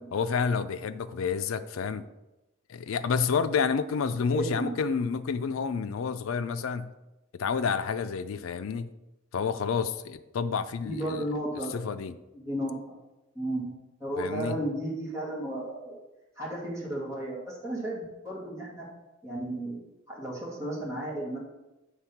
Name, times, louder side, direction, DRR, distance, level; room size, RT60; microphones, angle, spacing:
voice 1, 0.1-2.0 2.7-6.9 7.3-8.9 9.3-11.2 11.7-12.1 14.2-14.6, left 6 dB, 80° left, 11 dB, 0.4 m, -29 dB
voice 2, 4.3-4.7 10.8-11.8 12.3-13.0 13.4-13.7 14.0-16.0 16.4-18.9 19.2-19.8 20.1-21.4, right 1 dB, 15° right, -6 dB, 2.0 m, -33 dB
7.5 x 3.5 x 5.7 m, 0.99 s
head